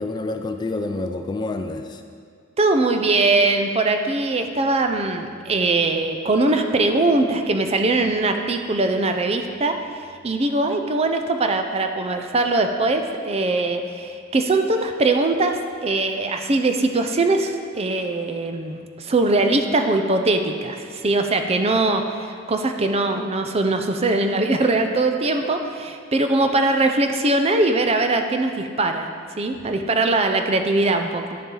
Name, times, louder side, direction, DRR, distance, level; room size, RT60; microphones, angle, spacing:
voice 1, 0.0-2.0, left 2 dB, 20° left, 6 dB, 0.3 m, -28 dB
voice 2, 2.6-29.1 29.4-31.4, right 2 dB, 30° right, 6 dB, 0.5 m, -21 dB
10.5 x 7.0 x 3.8 m, 2.1 s
head